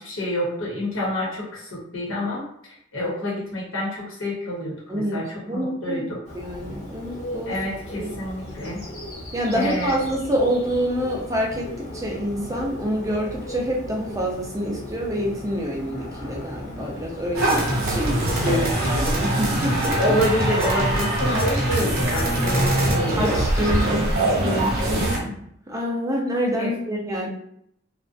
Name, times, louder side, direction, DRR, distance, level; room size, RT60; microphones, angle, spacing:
voice 1, 0.0-6.2 7.5-8.8 9.5-10.0 18.5-18.7 20.0-23.5 24.9-25.3 26.5-26.7, left 1 dB, 85° left, -4 dB, 1.0 m, -28 dB
voice 2, 5.5-6.0 6.3-7.5 7.9-8.1 9.3-11.7 11.9-19.9 23.2-24.1 24.4-25.0 25.7-27.3, equal, 15° right, -2 dB, 0.4 m, -27 dB
Bird, 6.2-23.8, equal, 35° left, 1.0 m, -37 dB
sound 1, 17.3-25.2, right 1 dB, 50° right, 0.7 m, -22 dB
2.4 x 2.1 x 2.5 m, 0.71 s
head